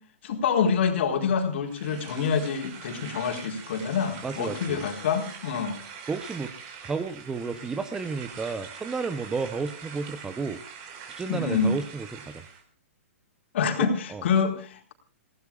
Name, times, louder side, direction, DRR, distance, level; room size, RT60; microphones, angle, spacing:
voice 1, 0.2-5.8 11.3-11.8 13.5-14.9, left 6 dB, 50° left, 5 dB, 4.4 m, -26 dB
sound 1, 1.7-12.6, right 6 dB, 30° right, 5.0 m, -43 dB
voice 2, 4.2-4.8 6.1-6.5 6.8-10.6 11.1-12.4 13.8-14.2, right 4 dB, 10° right, 12 dB, 0.8 m, -32 dB
29.0 x 18.0 x 2.4 m, 0.36 s
hypercardioid pair, 160°, 8 cm